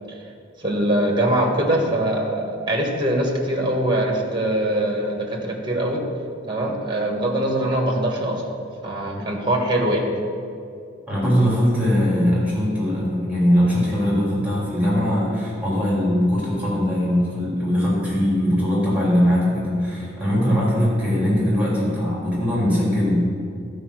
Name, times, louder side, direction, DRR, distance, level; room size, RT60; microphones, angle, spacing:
voice 1, 0.6-6.0 6.5-8.4 8.8-10.0, right 1 dB, 25° right, 1 dB, 1.5 m, -22 dB
voice 2, 11.1-23.2, equal, 5° right, -6 dB, 2.8 m, -21 dB
13.0 x 4.9 x 6.3 m, 2.4 s
head